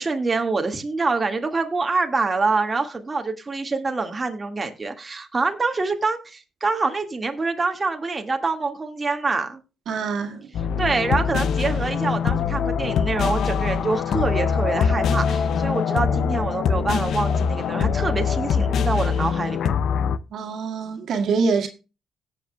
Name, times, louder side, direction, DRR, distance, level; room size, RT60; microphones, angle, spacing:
voice 1, 0.0-9.6 10.8-19.7, right 3 dB, 25° right, 1.9 m, -25 dB
voice 2, 9.9-10.5 20.3-21.7, right 5 dB, 70° right, 1.9 m, -25 dB
sound 1, 10.5-20.2, left 6 dB, 70° left, 0.6 m, -23 dB
17.5 x 7.5 x 2.3 m
cardioid pair, 90°, 0 cm